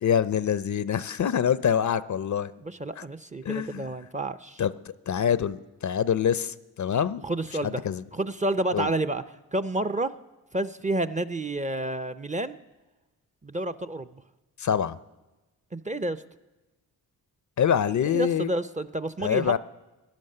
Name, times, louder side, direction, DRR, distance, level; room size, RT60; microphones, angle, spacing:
voice 1, 0.0-2.5 3.4-3.9 4.6-4.7 5.1-7.2 7.6-8.0 8.7-8.9 14.6-15.0 17.6-18.5 19.2-19.6, left 8 dB, 45° left, 16 dB, 0.5 m, -25 dB
voice 2, 2.6-4.6 7.2-7.8 8.1-9.2 9.5-10.1 10.5-12.6 13.4-14.2 15.7-16.2 18.0-19.6, right 2 dB, 20° right, 9 dB, 0.5 m, -29 dB
16.0 x 10.5 x 6.6 m, 1.1 s
cardioid pair, 60°, 40 cm